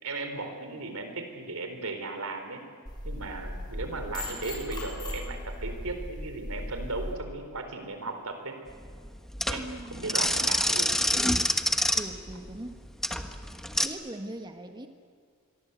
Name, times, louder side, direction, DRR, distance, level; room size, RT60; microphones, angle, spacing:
voice 1, 0.0-2.6 3.0-8.6 9.5-11.0, right 3 dB, 85° right, 6 dB, 4.1 m, -36 dB
sound 1, 2.9-7.1, left 1 dB, 20° left, 6.6 m, -37 dB
sound 2, 8.7-13.9, left 1 dB, ahead, 1.2 m, -27 dB
voice 2, 9.5-10.1 11.9-12.9 13.8-14.9, right 1 dB, 20° right, 5 dB, 1.5 m, -41 dB
27.0 x 23.5 x 8.3 m, 2.1 s
head